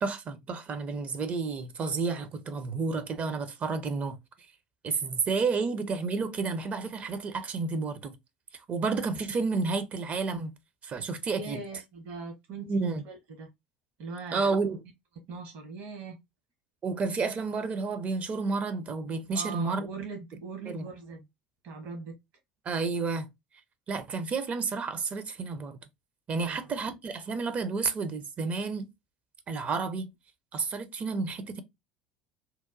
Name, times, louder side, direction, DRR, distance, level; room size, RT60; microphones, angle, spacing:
voice 1, 0.0-4.2 4.8-8.2 8.7-10.5 10.8-11.6 12.6-13.0 14.3-14.8 16.8-19.9 20.7-20.9 22.7-23.3 23.9-25.8 26.3-28.9 29.5-30.1 30.5-31.6, right 4 dB, 35° right, 0.5 m, -31 dB
voice 2, 11.4-13.5 14.0-14.5 15.3-16.2 19.3-21.3 21.6-22.1 26.4-26.7, right 4 dB, 55° right, 1.0 m, -40 dB
2.8 x 2.1 x 2.5 m
figure-of-eight pair, 70°, 4 cm